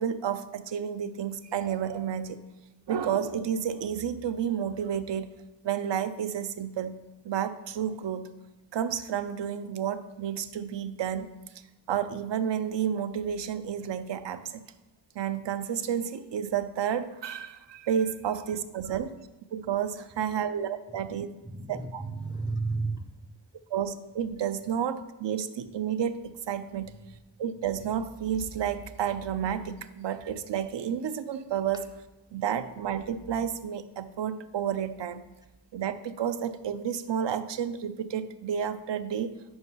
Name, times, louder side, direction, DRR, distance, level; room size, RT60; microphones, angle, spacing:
voice 1, 0.0-2.4 2.9-5.3 5.6-6.9 7.2-8.3 8.7-11.3 11.9-14.7 15.2-19.2 19.5-21.3 21.7-22.0 23.7-26.9 27.4-31.9 32.3-35.2 35.7-39.3, right 8 dB, 65° right, 12 dB, 0.5 m, -31 dB
voice 2, 21.4-23.3, right 3 dB, 10° right, 8 dB, 0.4 m, -34 dB
5.3 x 4.8 x 5.3 m, 1.1 s
cardioid pair, 50°, 47 cm